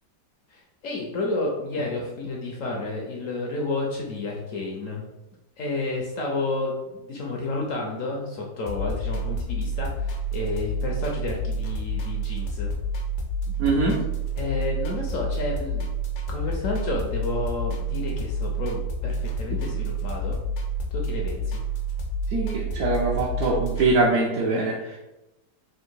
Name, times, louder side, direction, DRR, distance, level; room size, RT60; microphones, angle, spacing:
voice 1, 0.5-5.1 5.6-12.7 14.4-16.0 16.3-20.4 20.9-21.6, left 2 dB, 70° left, 0 dB, 0.8 m, -31 dB
sound 1, 8.7-23.9, right 2 dB, 85° left, 1.5 m, -29 dB
voice 2, 13.6-14.0 22.3-25.0, right 3 dB, 65° right, -4 dB, 0.9 m, -23 dB
3.7 x 2.6 x 4.4 m, 0.96 s
omnidirectional pair, 2.1 m